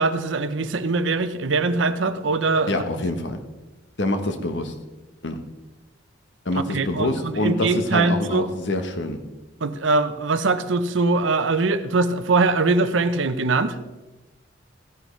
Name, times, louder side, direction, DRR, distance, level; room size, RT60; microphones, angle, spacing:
voice 1, 0.0-2.7 6.5-8.5 9.6-13.8, right 3 dB, 70° right, 11 dB, 0.7 m, -22 dB
voice 2, 2.7-3.4 4.0-4.7 5.2-5.4 6.4-9.2, left 1 dB, 65° left, 7 dB, 1.1 m, -26 dB
15.5 x 10.0 x 3.2 m, 1.1 s
head